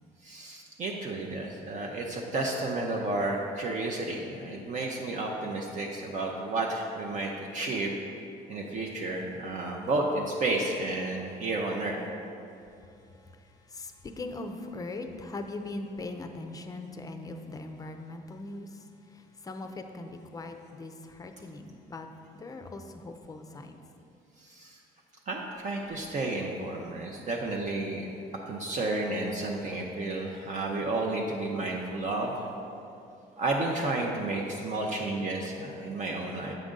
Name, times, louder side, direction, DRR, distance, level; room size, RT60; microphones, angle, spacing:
voice 1, 0.2-7.9 8.5-12.0 24.4-24.8 25.3-28.1 28.5-32.5 33.4-36.5, right 2 dB, 45° right, 0 dB, 0.6 m, -32 dB
voice 2, 13.3-22.1 22.3-23.9, left 2 dB, 20° left, 6 dB, 0.5 m, -40 dB
7.8 x 5.1 x 3.7 m, 2.6 s
cardioid pair, 110°, 17 cm